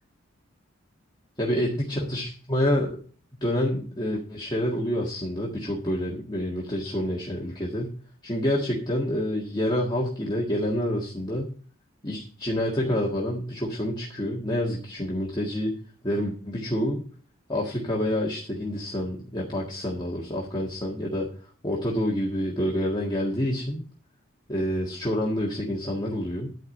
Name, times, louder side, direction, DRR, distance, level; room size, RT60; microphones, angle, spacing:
voice 1, 1.4-3.0 3.4-7.9 8.2-11.5 12.0-15.8 16.0-17.0 17.5-21.3 21.6-23.8 24.5-26.5, equal, 20° left, -3 dB, 1.7 m, -28 dB
12.0 x 4.8 x 6.7 m, 0.42 s
head